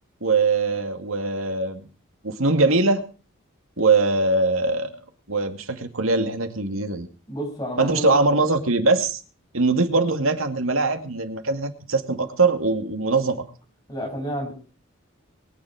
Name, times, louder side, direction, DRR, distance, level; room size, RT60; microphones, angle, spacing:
voice 1, 0.2-1.9 2.2-3.0 3.8-4.9 5.3-7.1 7.8-9.2 9.5-13.4, right 3 dB, 80° right, 7 dB, 2.4 m, -22 dB
voice 2, 7.3-8.1 13.9-14.5, equal, 20° left, 1 dB, 7.3 m, -30 dB
23.0 x 10.0 x 4.9 m, 0.37 s
head